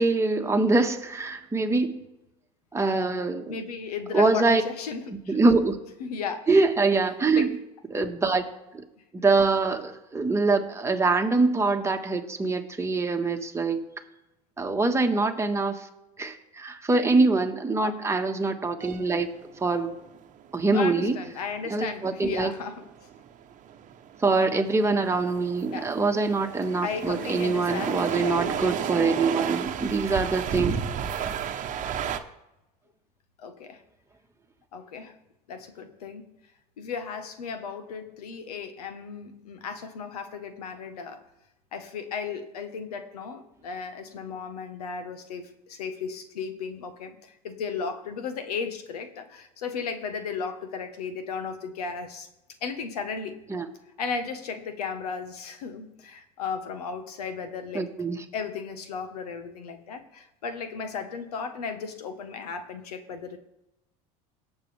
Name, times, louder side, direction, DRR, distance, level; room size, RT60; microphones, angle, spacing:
voice 1, 0.0-2.0 2.7-3.5 4.1-4.6 5.3-5.8 6.5-7.5 7.9-8.8 9.1-13.8 14.6-15.9 16.2-19.3 19.6-19.9 20.5-21.2 21.7-22.5 24.2-30.8 53.5-53.6 57.7-58.2, right 3 dB, 15° right, 4 dB, 1.5 m, -24 dB
voice 2, 3.5-5.4 6.0-6.5 7.0-7.5 17.8-18.1 20.7-23.1 25.7-25.9 26.8-28.8 33.4-33.8 34.7-35.2 35.5-36.3 36.8-41.2 41.7-52.3 52.6-53.4 54.0-57.9 58.3-63.4, left 5 dB, 90° left, 9 dB, 1.3 m, -35 dB
sound 1, 18.8-32.2, right 8 dB, 45° right, 1.0 m, -33 dB
18.5 x 7.3 x 3.4 m, 0.91 s
hypercardioid pair, 90°, 19 cm